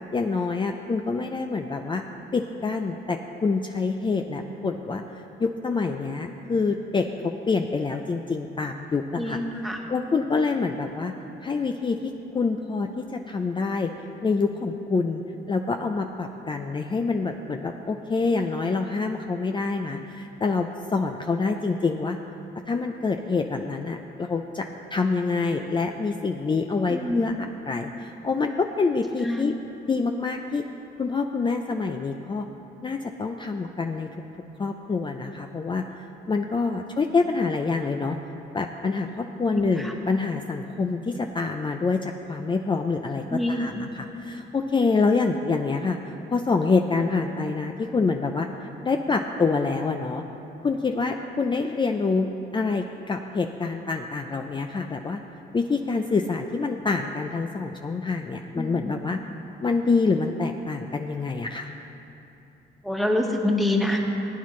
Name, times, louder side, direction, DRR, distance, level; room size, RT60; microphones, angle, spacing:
voice 1, 0.1-2.0 2.3-5.0 5.4-7.1 7.5-9.4 9.9-11.1 11.4-13.9 14.2-15.2 15.5-22.2 22.7-27.3 27.7-29.5 29.9-30.6 31.0-32.5 32.8-34.1 34.6-35.8 36.3-38.2 38.5-46.0 46.3-48.5 48.8-50.2 50.6-55.2 55.5-59.2 59.6-61.7, left 4 dB, 25° left, 4 dB, 0.5 m, -26 dB
voice 2, 9.2-9.8 26.9-27.4 29.2-29.5 39.5-39.9 43.3-43.8 58.6-58.9 62.8-64.0, left 1 dB, ahead, 0 dB, 1.4 m, -26 dB
18.5 x 9.2 x 3.2 m, 3.0 s
cardioid pair, 90°, 20 cm